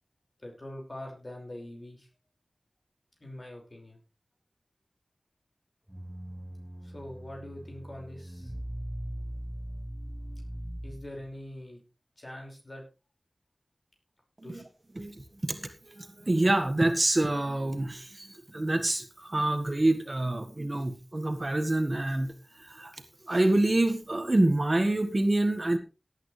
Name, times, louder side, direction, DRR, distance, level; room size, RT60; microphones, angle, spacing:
voice 1, 0.4-2.1 3.2-4.0 6.8-8.5 10.8-11.8 12.2-12.8 14.4-14.6, left 1 dB, 40° left, 1 dB, 5.5 m, -43 dB
sound 1, 5.9-11.3, right 1 dB, 10° right, 0.9 m, -40 dB
voice 2, 15.0-23.0 23.2-25.8, right 1 dB, 40° right, 7 dB, 1.7 m, -27 dB
17.5 x 9.2 x 3.3 m, 0.31 s
wide cardioid pair, 65°, 0 cm